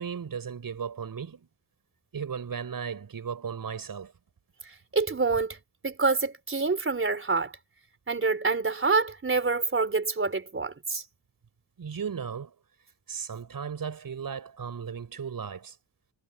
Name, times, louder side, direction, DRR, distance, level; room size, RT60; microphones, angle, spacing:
voice 1, 0.0-1.5 2.1-4.1 11.8-12.5 13.1-15.8, right 6 dB, 50° right, 6.6 m, -36 dB
voice 2, 4.9-5.6 5.8-7.5 8.1-11.0, right 4 dB, 30° right, 4.1 m, -26 dB
wide cardioid pair, 120°, 43 cm